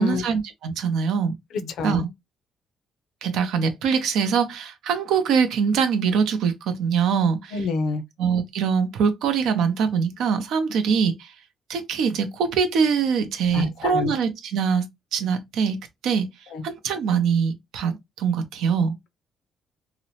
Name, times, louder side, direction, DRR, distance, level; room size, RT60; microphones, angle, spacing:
voice 1, 0.0-1.3 1.6-2.1 3.2-7.6 8.2-11.3 11.7-16.3 16.6-18.9, right 6 dB, 85° right, 0.6 m, -23 dB
voice 2, 7.5-8.0 13.5-14.1 16.5-16.6, left 4 dB, 75° left, 0.5 m, -27 dB
2.9 x 2.0 x 2.7 m
cardioid pair, 90°, 0 cm